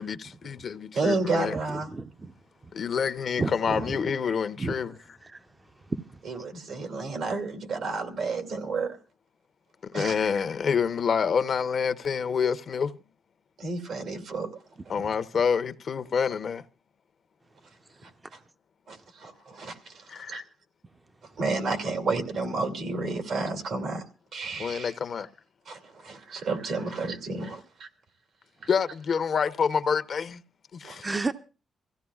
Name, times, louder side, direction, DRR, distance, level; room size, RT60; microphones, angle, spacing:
voice 1, 0.0-1.5 2.7-5.0 9.8-13.0 14.9-16.6 20.1-20.4 24.6-25.3 28.7-30.4 30.7-31.1, left 6 dB, 60° left, 0.8 m, -27 dB
voice 2, 0.9-1.9 6.2-9.0 9.9-10.2 13.6-14.5 18.0-18.4 18.9-20.4 21.4-24.0 24.3-24.9 25.7-27.9 30.8-31.0, right 3 dB, 75° right, 2.5 m, -31 dB
voice 3, 1.7-2.3 3.4-4.0 4.6-4.7 5.2-5.4 5.9-6.0 10.0-10.1 31.0-31.3, right 3 dB, 30° right, 0.6 m, -31 dB
24.5 x 15.5 x 2.4 m
cardioid pair, 70°, 0 cm